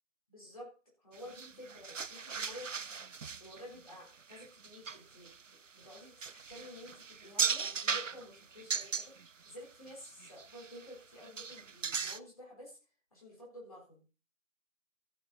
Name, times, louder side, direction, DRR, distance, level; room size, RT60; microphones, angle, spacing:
voice 1, 0.3-0.7 1.0-2.7 3.4-5.3 5.7-9.1 9.5-12.8 13.1-14.2, left 1 dB, 25° left, -4 dB, 4.0 m, -51 dB
sound 1, 1.1-9.5 9.9-10.9 11.2-12.2, right 5 dB, 70° right, 0.6 m, -38 dB
15.0 x 6.0 x 4.1 m, 0.33 s
figure-of-eight pair, 165°, 40 cm